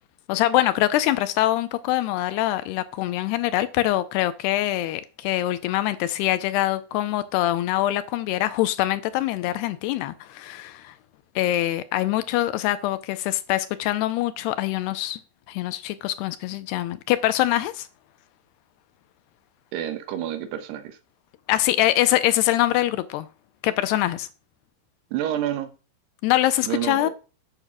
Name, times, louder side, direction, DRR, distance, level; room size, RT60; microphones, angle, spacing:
voice 1, 0.3-10.9 11.4-15.2 15.5-17.9 21.5-23.3 23.6-24.3 26.2-27.1, left 14 dB, 80° left, 2.6 m, -24 dB
voice 2, 19.7-21.0 25.1-25.7 26.6-27.1, right 11 dB, 75° right, 3.2 m, -29 dB
9.0 x 6.7 x 6.2 m
omnidirectional pair, 4.9 m